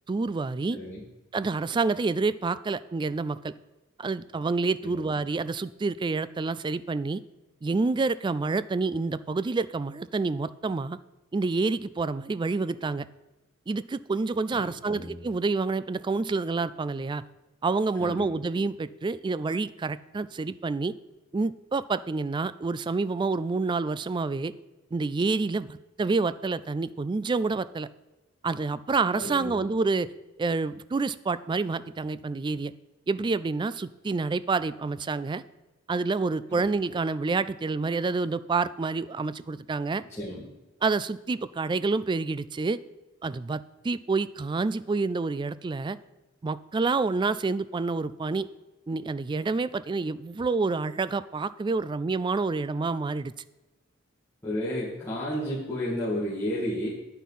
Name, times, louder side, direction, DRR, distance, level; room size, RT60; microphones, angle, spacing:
voice 1, 0.1-0.8 1.3-3.5 4.0-7.2 7.6-11.0 11.3-13.1 13.7-17.2 17.6-20.9 21.3-24.5 24.9-27.9 28.4-30.1 30.4-32.7 33.1-35.4 35.9-40.0 40.8-42.8 43.2-43.6 43.8-46.0 46.4-48.5 48.9-53.3, right 3 dB, 25° right, 16 dB, 0.3 m, -28 dB
voice 2, 0.7-1.0 4.8-5.0 14.5-15.2 18.0-18.3 29.1-29.6 36.5-36.6 40.2-40.5 54.4-56.9, left 1 dB, 15° left, -9 dB, 2.2 m, -32 dB
10.0 x 9.4 x 4.2 m, 1.1 s
head